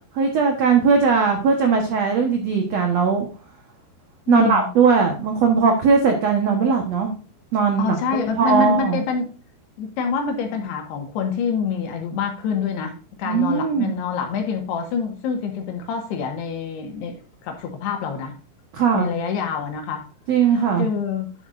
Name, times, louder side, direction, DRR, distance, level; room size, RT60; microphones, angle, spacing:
voice 1, 0.1-3.3 4.3-7.1 7.5-8.0 8.3-9.0 13.2-13.9 18.7-19.1 20.3-20.9, right 5 dB, 85° right, 3 dB, 1.4 m, -19 dB
voice 2, 4.3-4.7 7.8-9.3 9.8-18.4 18.9-20.0 20.5-21.3, left 6 dB, 70° left, 4 dB, 3.4 m, -26 dB
11.0 x 8.0 x 2.5 m, 0.36 s
omnidirectional pair, 5.1 m